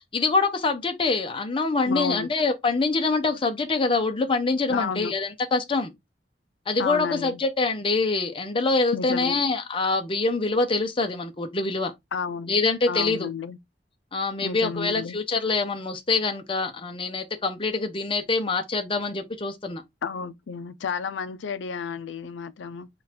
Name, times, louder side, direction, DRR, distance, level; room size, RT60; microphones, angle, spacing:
voice 1, 0.1-5.9 6.7-11.9 12.5-13.3 14.1-19.8, left 3 dB, 30° left, 0.7 m, -25 dB
voice 2, 1.9-2.3 4.7-5.1 6.8-7.4 8.9-9.4 12.1-12.5 12.9-13.6 14.4-15.2 20.0-22.9, left 5 dB, 85° left, 0.4 m, -31 dB
3.9 x 2.4 x 4.2 m
head